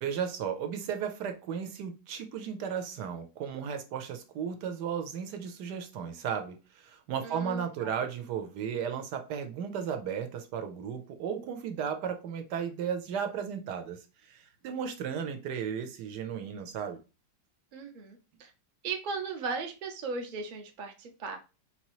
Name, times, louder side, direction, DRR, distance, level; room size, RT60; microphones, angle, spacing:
voice 1, 0.0-17.0, right 7 dB, 75° right, 1.2 m, -35 dB
voice 2, 7.2-7.9 17.7-18.5 18.8-21.4, right 4 dB, 50° right, 0.6 m, -37 dB
4.1 x 2.9 x 3.0 m
omnidirectional pair, 1.9 m